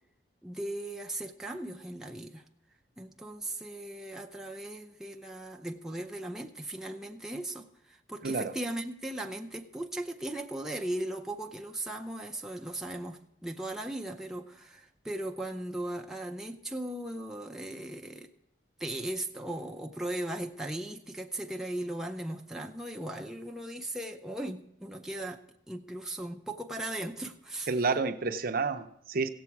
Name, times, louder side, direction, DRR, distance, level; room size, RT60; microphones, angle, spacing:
voice 1, 0.4-2.5 3.0-18.3 18.8-25.4 25.7-27.7, right 1 dB, 5° right, 0.5 m, -38 dB
voice 2, 27.7-29.3, right 4 dB, 50° right, 0.6 m, -29 dB
16.5 x 7.2 x 4.6 m
head